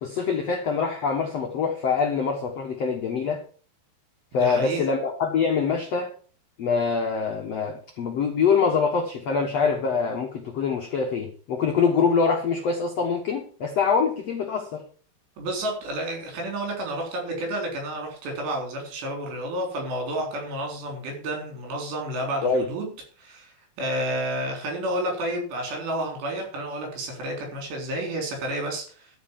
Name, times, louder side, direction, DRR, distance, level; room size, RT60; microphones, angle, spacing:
voice 1, 0.0-3.4 4.3-6.1 6.6-14.8 22.4-22.7, left 5 dB, 85° left, 2 dB, 1.4 m, -24 dB
voice 2, 4.4-4.8 15.4-22.9 23.2-23.5 23.8-29.1, right 1 dB, 70° right, 2 dB, 5.8 m, -30 dB
12.5 x 5.5 x 7.3 m, 0.42 s
omnidirectional pair, 5.2 m